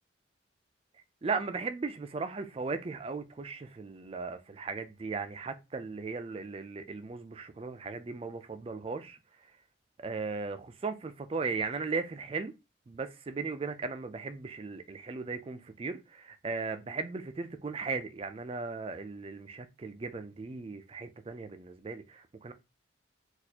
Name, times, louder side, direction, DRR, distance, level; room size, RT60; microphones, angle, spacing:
voice 1, 1.2-9.2 10.0-12.5 12.9-22.5, right 4 dB, 30° right, 0.3 m, -37 dB
4.1 x 2.4 x 2.8 m
head